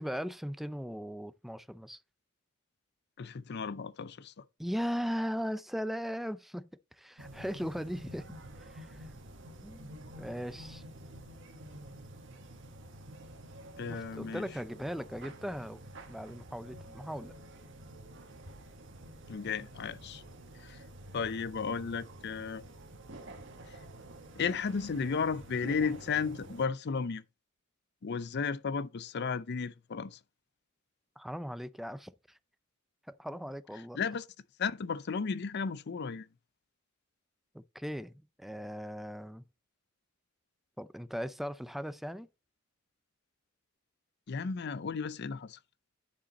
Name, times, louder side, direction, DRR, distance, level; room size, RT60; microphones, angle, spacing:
voice 1, 0.0-2.0 4.6-8.3 8.6-9.1 9.6-10.8 13.9-15.8 16.1-17.3 31.2-32.4 33.1-34.0 37.5-39.4 40.8-42.3, equal, ahead, 0.4 m, -38 dB
voice 2, 3.2-4.4 13.8-14.4 19.3-20.2 20.6-20.8 21.1-22.6 24.4-27.2 28.0-30.2 34.0-34.2 34.6-36.3 44.3-45.6, left 5 dB, 55° left, 0.5 m, -34 dB
sound 1, 7.2-26.7, right 1 dB, 65° right, 1.6 m, -49 dB
10.0 x 5.1 x 4.1 m
head